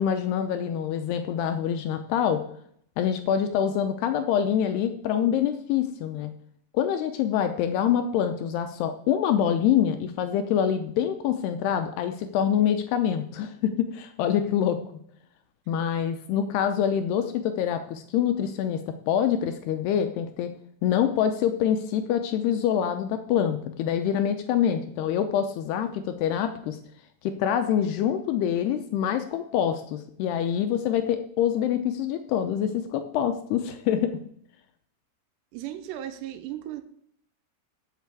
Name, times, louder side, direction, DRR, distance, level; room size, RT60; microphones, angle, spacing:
voice 1, 0.0-2.4 3.0-6.3 6.7-14.8 15.7-18.8 19.1-20.5 20.8-26.8 27.2-34.2, left 9 dB, 75° left, 8 dB, 2.5 m, -25 dB
voice 2, 35.5-36.8, right 12 dB, 80° right, 10 dB, 2.8 m, -36 dB
8.2 x 7.6 x 8.2 m, 0.66 s
omnidirectional pair, 5.2 m